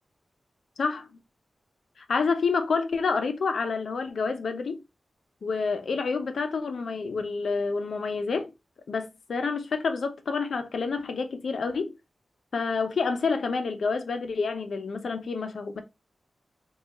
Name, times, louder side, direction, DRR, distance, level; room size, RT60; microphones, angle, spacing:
voice 1, 2.0-4.8 5.4-8.5 8.9-11.9 12.5-15.8, left 4 dB, 80° left, 0.6 m, -28 dB
4.6 x 2.4 x 2.9 m
wide cardioid pair, 95°, 0 cm